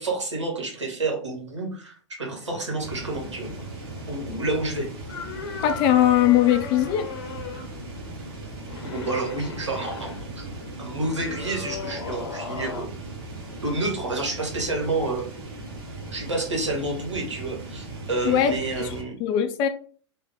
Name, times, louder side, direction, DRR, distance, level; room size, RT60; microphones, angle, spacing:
voice 1, 0.0-3.5 4.1-4.9 7.5-7.7 8.8-10.4 10.8-12.9 13.6-15.2 16.1-19.1, right 2 dB, 75° right, 1.4 m, -29 dB
sound 1, 2.4-12.8, left 5 dB, 55° left, 0.8 m, -39 dB
sound 2, 2.8-19.0, right 2 dB, 50° right, 1.3 m, -38 dB
voice 2, 5.6-7.1 18.2-18.9 19.2-19.7, left 11 dB, 30° left, 0.4 m, -20 dB
3.4 x 2.6 x 3.5 m
figure-of-eight pair, 100°, 15 cm